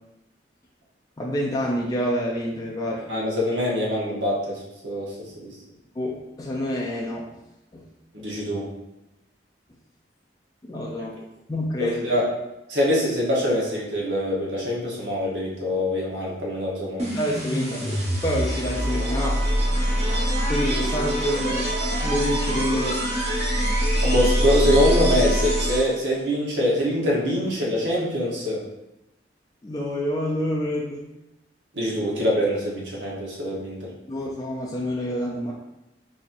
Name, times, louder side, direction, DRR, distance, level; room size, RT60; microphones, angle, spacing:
voice 1, 1.2-3.0 6.0-7.3 7.7-7.9 10.6-11.2 11.5-12.2 17.1-19.4 20.5-21.7 22.0-23.1 29.6-31.1 34.1-35.5, equal, 20° left, -4 dB, 0.4 m, -27 dB
voice 2, 3.1-5.5 8.1-8.7 11.8-12.3 12.7-17.1 24.0-28.6 31.7-33.9, equal, 85° right, -4 dB, 1.0 m, -24 dB
sound 1, 17.0-26.1, equal, 40° right, 0.9 m, -24 dB
4.1 x 2.7 x 2.5 m, 0.90 s
head